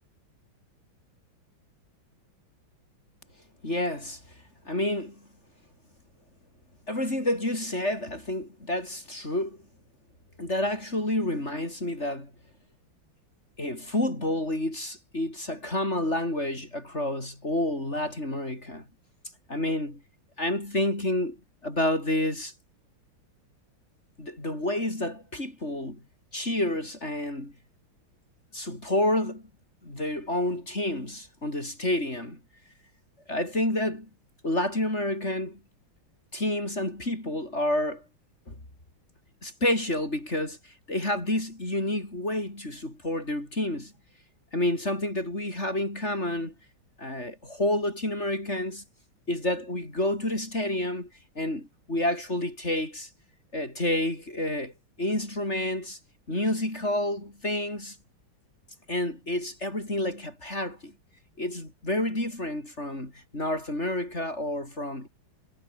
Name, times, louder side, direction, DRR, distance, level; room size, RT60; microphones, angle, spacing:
voice 1, 3.6-4.2 4.6-5.2 6.9-9.6 10.4-12.3 13.6-18.9 19.5-20.0 20.4-21.4 21.6-22.5 24.2-26.0 26.3-27.5 28.5-29.4 29.8-32.4 33.3-34.1 34.4-35.6 36.3-38.0 38.5-38.6 39.4-43.9 44.5-46.5 47.0-48.8 49.3-51.1 51.3-53.1 53.5-54.7 55.0-56.0 56.3-58.0 58.9-60.9 61.4-65.1, left 1 dB, 30° left, 6.7 m, -29 dB
omnidirectional pair, 2.3 m